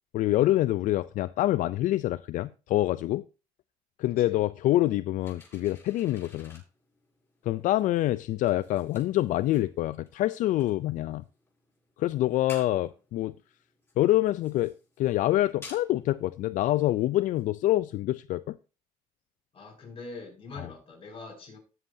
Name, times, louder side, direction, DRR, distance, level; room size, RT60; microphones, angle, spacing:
voice 1, 0.1-3.2 4.0-6.6 7.5-11.2 12.0-13.3 14.0-18.6 20.6-20.7, left 15 dB, 70° left, 0.4 m, -26 dB
sound 1, 5.2-17.5, left 3 dB, 20° left, 7.4 m, -54 dB
voice 2, 19.5-21.6, left 3 dB, 45° left, 5.9 m, -44 dB
19.0 x 7.6 x 2.7 m
cardioid pair, 100°, 14 cm